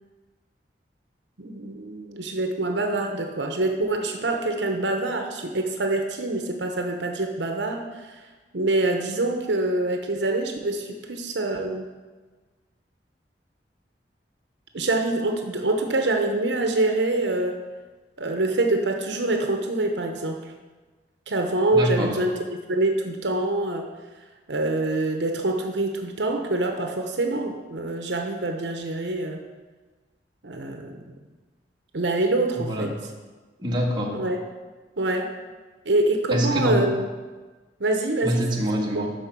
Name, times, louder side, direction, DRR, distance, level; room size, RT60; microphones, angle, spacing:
voice 1, 1.4-8.2 8.5-11.9 14.7-17.6 18.2-20.4 21.3-23.9 24.5-29.4 30.4-31.1 31.9-32.9 34.1-34.4 35.0-35.3 35.8-37.1 37.8-38.5 38.9-39.1, right 2 dB, 80° right, 4 dB, 1.0 m, -25 dB
voice 2, 21.7-22.1 32.6-32.9 33.6-34.2 36.3-36.8 38.2-39.1, equal, 25° right, -2 dB, 1.6 m, -25 dB
12.5 x 4.7 x 6.1 m, 1.3 s
head